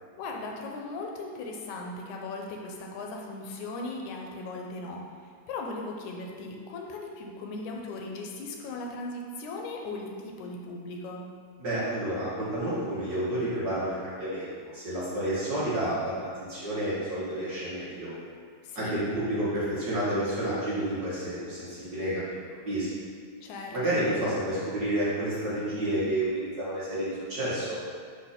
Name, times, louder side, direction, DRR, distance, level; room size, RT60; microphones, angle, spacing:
voice 1, 0.2-11.2 18.6-19.0 23.4-24.0, left 2 dB, 75° left, 1 dB, 1.9 m, -38 dB
voice 2, 11.6-16.1 16.5-18.1 18.7-22.4 22.6-22.9 23.7-27.8, right 1 dB, 40° right, -10 dB, 1.4 m, -30 dB
6.3 x 2.9 x 5.6 m, 2.1 s
omnidirectional pair, 3.7 m